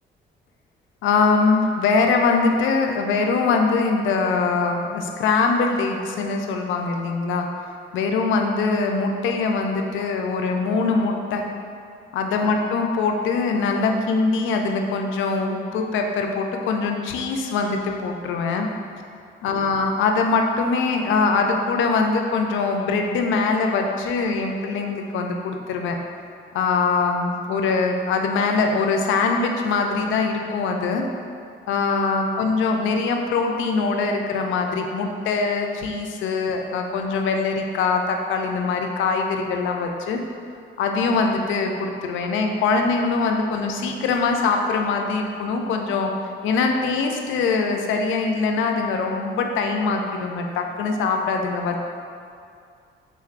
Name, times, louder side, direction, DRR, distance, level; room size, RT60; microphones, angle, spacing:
voice 1, 1.0-11.4 12.1-18.7 19.4-26.0 26.5-31.0 31.7-40.2 40.8-46.1 46.4-51.8, left 4 dB, 80° left, 3 dB, 0.4 m, -22 dB
3.8 x 3.1 x 2.4 m, 2.3 s
cardioid pair, 90°, 20 cm